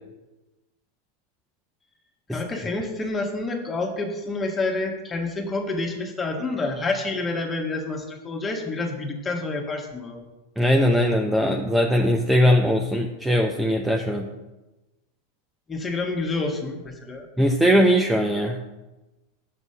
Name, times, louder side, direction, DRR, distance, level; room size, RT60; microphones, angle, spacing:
voice 1, 2.3-10.2 15.7-17.3, left 3 dB, 20° left, 2 dB, 1.5 m, -28 dB
voice 2, 10.6-14.3 17.4-18.6, equal, 5° right, 1 dB, 0.7 m, -20 dB
6.0 x 5.5 x 5.7 m, 1.1 s
hypercardioid pair, 105°, 0 cm